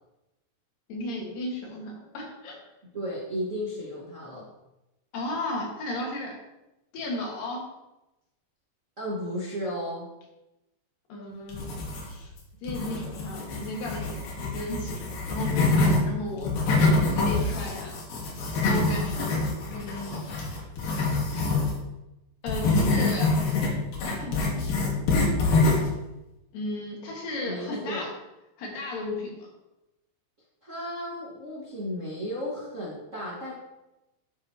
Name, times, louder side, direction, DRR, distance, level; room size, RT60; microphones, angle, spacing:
voice 1, 0.9-2.6 5.1-6.4 6.9-7.7 11.1-11.8 12.0-12.3 12.6-16.5 17.0-18.0 18.6-19.4 19.7-20.2 22.4-23.3 24.2-24.9 26.5-28.1 28.6-29.5, left 2 dB, 70° left, -1 dB, 3.5 m, -34 dB
voice 2, 2.9-4.4 9.0-10.1 27.4-28.1 30.6-33.5, equal, 35° right, -6 dB, 1.3 m, -34 dB
sound 1, 11.5-12.3 12.7-16.0 16.4-21.8 22.5-25.9, left 3 dB, 90° left, 3.5 m, -25 dB
10.5 x 7.7 x 2.9 m, 0.95 s
omnidirectional pair, 4.1 m